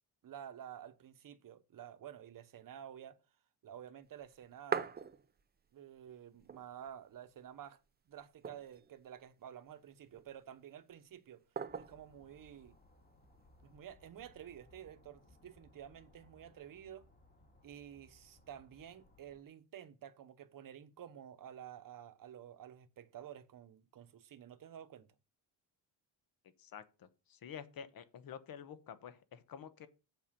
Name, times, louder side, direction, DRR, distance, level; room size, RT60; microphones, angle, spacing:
voice 1, 0.2-3.2 3.6-4.9 5.7-7.8 8.1-11.4 11.8-12.7 13.6-17.1 17.6-25.1, right 10 dB, 45° right, 1.0 m, -51 dB
sound 1, 4.2-5.7 6.1-6.2 6.3-7.2 7.6-7.7 8.2-9.0 9.7-10.4 11.6-12.1 13.2-13.8, right 6 dB, 20° right, 0.5 m, -41 dB
sound 2, 11.7-19.4, left 1 dB, 20° left, 2.1 m, -65 dB
voice 2, 26.6-29.9, left 8 dB, 50° left, 1.1 m, -49 dB
7.5 x 5.4 x 7.4 m
cardioid pair, 135°, 45 cm